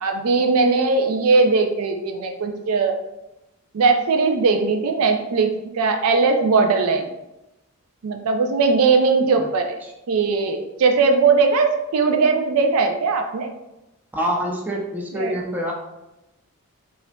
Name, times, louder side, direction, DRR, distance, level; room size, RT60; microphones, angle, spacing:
voice 1, 0.0-2.9 3.7-7.1 8.0-9.8 10.1-13.5 15.1-15.3, right 4 dB, 70° right, 4 dB, 0.4 m, -19 dB
voice 2, 14.1-15.7, equal, 10° right, -2 dB, 0.5 m, -26 dB
4.8 x 2.5 x 2.2 m, 0.95 s
head